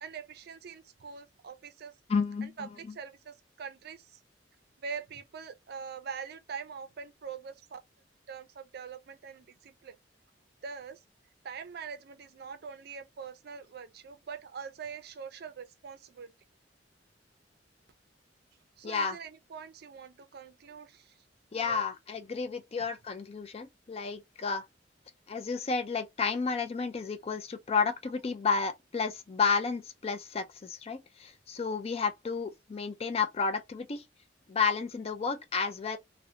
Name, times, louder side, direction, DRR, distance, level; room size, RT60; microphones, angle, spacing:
voice 1, 0.0-1.9 2.4-4.2 4.8-7.8 8.3-9.9 10.6-11.0 11.4-16.3 18.8-21.1 21.5-21.8, right 6 dB, 60° right, 0.4 m, -43 dB
voice 2, 2.1-2.7 18.8-19.2 21.5-24.7 25.3-34.0 34.5-36.0, left 5 dB, 35° left, 0.4 m, -31 dB
2.5 x 2.1 x 2.7 m
head